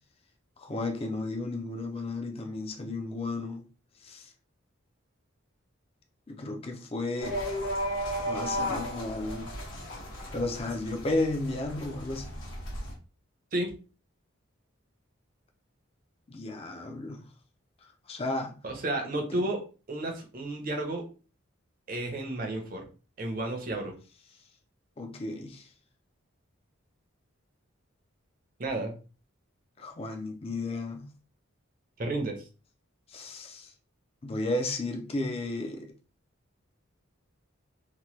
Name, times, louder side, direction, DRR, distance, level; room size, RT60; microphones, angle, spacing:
voice 1, 0.6-3.6 4.0-4.3 6.3-7.4 8.2-9.5 10.3-12.4 16.3-17.3 18.1-18.5 19.3-19.5 25.0-25.7 29.8-31.1 33.1-33.7 34.2-35.9, left 2 dB, 30° left, 0.4 m, -33 dB
sound 1, 7.2-12.9, equal, 70° left, 1.1 m, -35 dB
voice 2, 18.6-21.1 21.9-22.9 23.2-24.0 28.6-28.9 32.0-32.4, right 2 dB, 45° right, 0.6 m, -32 dB
2.9 x 2.2 x 3.0 m
head